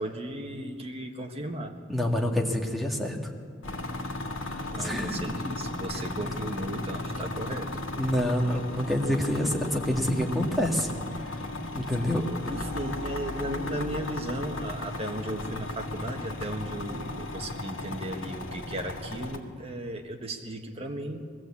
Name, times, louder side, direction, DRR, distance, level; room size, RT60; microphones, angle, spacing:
voice 1, 0.0-1.8 4.7-7.7 12.5-21.2, right 1 dB, 30° right, 3 dB, 1.6 m, -35 dB
voice 2, 1.9-3.3 4.4-5.2 8.0-10.9 11.7-12.2, equal, ahead, 0 dB, 1.8 m, -27 dB
sound 1, 3.6-19.4, left 2 dB, 90° left, 1.9 m, -35 dB
21.0 x 16.0 x 8.5 m, 2.1 s
head